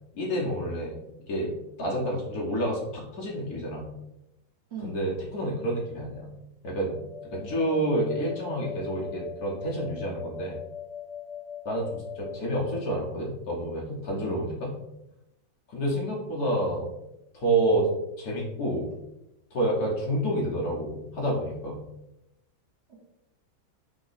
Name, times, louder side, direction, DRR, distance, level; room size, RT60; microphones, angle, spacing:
voice 1, 0.1-1.0 1.3-1.5 1.8-3.8 4.8-6.3 6.6-10.6 11.6-14.7 15.7-16.9 17.3-17.9 18.2-18.9 19.5-21.8, right 1 dB, 60° left, -3 dB, 1.3 m, -29 dB
voice 2, 4.7-4.9 14.2-14.3 22.9-23.0, right 2 dB, 45° right, -7 dB, 1.0 m, -40 dB
sound 1, 6.9-12.3, left 8 dB, 60° right, 1.4 m, -40 dB
3.8 x 2.9 x 4.0 m, 0.88 s
omnidirectional pair, 2.1 m